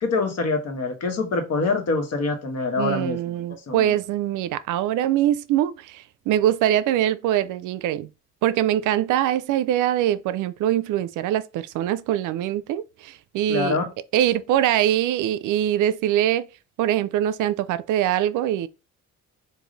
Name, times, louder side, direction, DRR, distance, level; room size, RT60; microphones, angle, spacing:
voice 1, 0.0-3.2 3.7-4.0 13.5-13.9, left 3 dB, 55° left, 1.3 m, -25 dB
voice 2, 2.8-8.1 8.4-13.8 14.1-16.5 16.8-18.7, right 12 dB, 85° right, 0.5 m, -23 dB
5.0 x 2.6 x 3.9 m
cardioid pair, 90°, 30 cm